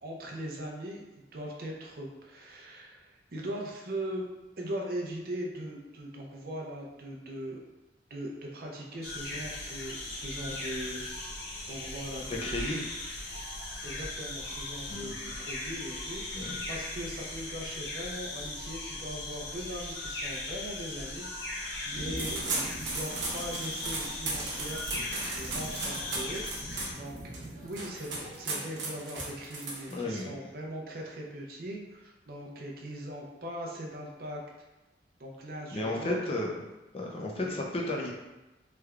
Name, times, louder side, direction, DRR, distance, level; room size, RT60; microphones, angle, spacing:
voice 1, 0.0-4.3 4.6-7.6 8.1-11.0 11.7-12.7 13.8-27.2 27.6-34.4 35.2-36.2 37.4-37.6, right 1 dB, 55° right, -1 dB, 0.6 m, -40 dB
sound 1, 9.0-26.9, left 2 dB, 80° left, 0.7 m, -38 dB
voice 2, 12.4-12.8 14.9-15.1 16.3-16.6 24.9-25.4 29.9-30.4 35.7-36.5 36.9-38.1, left 2 dB, 35° left, -1 dB, 0.5 m, -34 dB
sound 2, 21.9-28.7, right 1 dB, 30° right, 0.9 m, -45 dB
sound 3, 22.2-30.2, right 3 dB, 90° right, 0.9 m, -36 dB
3.3 x 3.3 x 2.3 m, 1.0 s
head